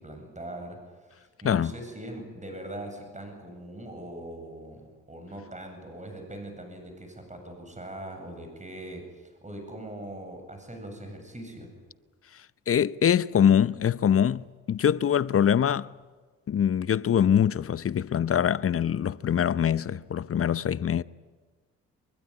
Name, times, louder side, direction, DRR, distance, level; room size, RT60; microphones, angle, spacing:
voice 1, 0.0-11.7, right 1 dB, 20° right, 8.0 m, -41 dB
voice 2, 12.7-15.9 16.5-21.0, left 9 dB, 40° left, 0.7 m, -23 dB
24.0 x 22.5 x 9.7 m
hypercardioid pair, 50°, 36 cm